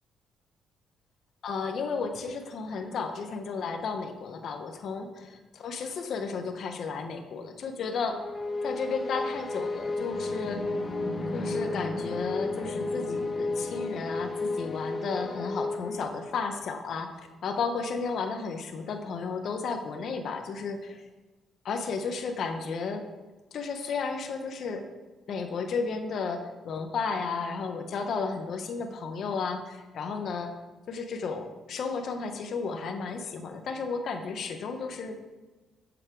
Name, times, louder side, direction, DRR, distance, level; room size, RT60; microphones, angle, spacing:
voice 1, 1.4-5.1 5.5-8.3 8.6-10.6 11.3-17.1 17.4-21.0 21.6-23.0 23.5-24.9 25.3-30.5 30.9-35.2, left 5 dB, 65° left, 6 dB, 1.0 m, -33 dB
sound 1, 8.1-16.5, left 2 dB, 30° left, 1.1 m, -32 dB
7.3 x 7.1 x 4.7 m, 1.2 s
cardioid pair, 90°, 0 cm